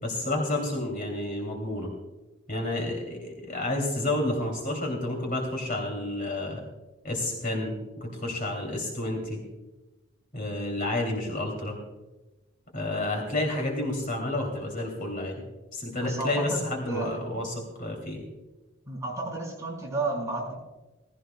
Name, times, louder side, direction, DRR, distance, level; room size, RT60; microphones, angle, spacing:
voice 1, 0.0-1.9 2.5-6.6 7.0-9.4 10.3-11.8 12.7-15.4 15.7-18.2, left 1 dB, 40° left, 0 dB, 2.7 m, -30 dB
voice 2, 15.9-17.3 18.8-20.5, right 2 dB, 15° right, -4 dB, 5.2 m, -32 dB
19.5 x 15.5 x 2.2 m, 1.1 s
head